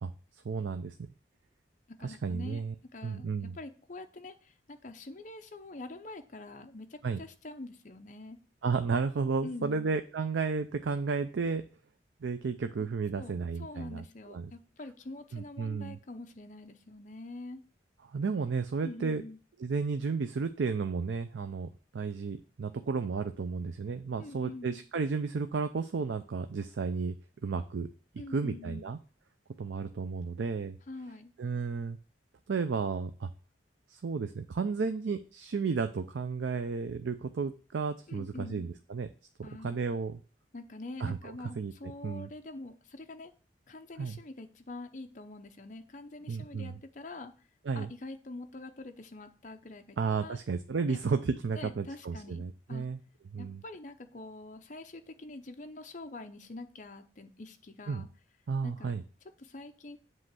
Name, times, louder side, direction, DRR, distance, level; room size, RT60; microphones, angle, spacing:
voice 1, 0.4-0.9 2.0-2.7 3.0-3.6 7.0-7.2 8.6-11.6 12.2-14.5 15.3-16.0 18.1-19.2 19.6-27.2 27.4-27.9 28.3-29.0 29.6-30.8 31.4-32.0 32.5-33.3 33.9-39.1 39.4-40.2 41.0-42.3 44.0-44.1 46.3-46.8 47.7-47.9 50.0-53.0 53.3-53.6 57.9-58.1 58.5-59.0, right 5 dB, 80° right, 9 dB, 0.5 m, -33 dB
voice 2, 2.0-2.6 2.9-8.4 9.4-9.9 13.2-17.6 18.8-19.4 24.2-24.8 28.2-28.9 30.9-31.3 38.1-38.7 39.4-39.8 40.5-43.3 43.7-47.3 47.7-50.4 50.9-51.0 51.5-52.8 53.4-58.1 58.6-59.0 59.4-60.0, left 2 dB, 45° left, 7 dB, 0.7 m, -45 dB
7.6 x 3.2 x 6.0 m, 0.38 s
head